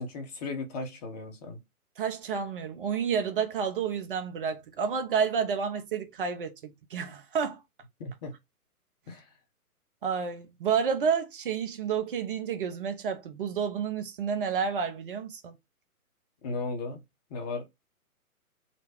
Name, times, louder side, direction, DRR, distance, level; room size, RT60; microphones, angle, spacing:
voice 1, 0.0-1.6 8.0-8.3 9.1-9.3 16.4-17.0 17.3-17.7, left 3 dB, 25° left, 1.0 m, -36 dB
voice 2, 2.0-7.6 10.0-15.5, right 6 dB, 35° right, 0.8 m, -30 dB
4.1 x 2.2 x 4.3 m
figure-of-eight pair, 135°, 44 cm